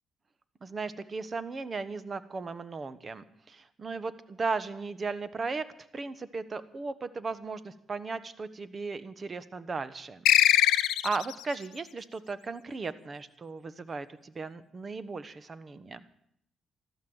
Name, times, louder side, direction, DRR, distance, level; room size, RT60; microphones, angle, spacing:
voice 1, 0.6-5.6 5.9-10.3 10.5-16.0, right 4 dB, 35° right, 14 dB, 1.2 m, -36 dB
sound 1, 10.2-11.4, left 13 dB, 90° left, 0.5 m, -22 dB
13.5 x 12.5 x 8.0 m, 0.73 s
cardioid pair, 90°, 0 cm